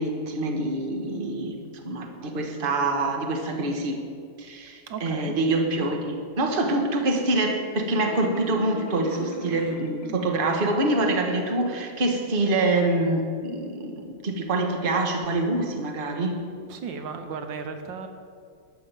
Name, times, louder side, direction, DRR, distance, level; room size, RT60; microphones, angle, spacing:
voice 1, 0.0-1.6 1.8-4.0 4.4-16.4, right 2 dB, 30° right, 3 dB, 1.4 m, -25 dB
voice 2, 4.9-5.4 9.5-9.8 16.7-18.1, right 5 dB, 75° right, 7 dB, 1.6 m, -35 dB
Marimba xylophone, 7.9-10.7, equal, 55° left, 1.5 m, -38 dB
13.0 x 6.2 x 8.8 m, 2.2 s
omnidirectional pair, 2.1 m